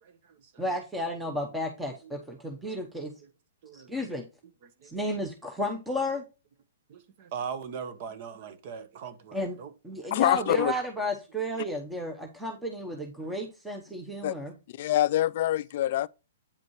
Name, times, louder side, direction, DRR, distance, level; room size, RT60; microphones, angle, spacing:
voice 1, 0.0-0.5 2.0-2.1 3.6-3.9 4.6-4.9 6.9-9.7 15.9-16.0, right 7 dB, 45° right, 1.0 m, -40 dB
voice 2, 0.6-3.1 3.7-4.2 4.9-6.2 9.3-9.6 9.8-14.5, equal, 5° right, 0.9 m, -33 dB
voice 3, 10.1-10.7 14.2-14.3 14.7-16.1, left 13 dB, 50° left, 0.3 m, -25 dB
8.5 x 5.1 x 3.1 m
hypercardioid pair, 150°, 0 cm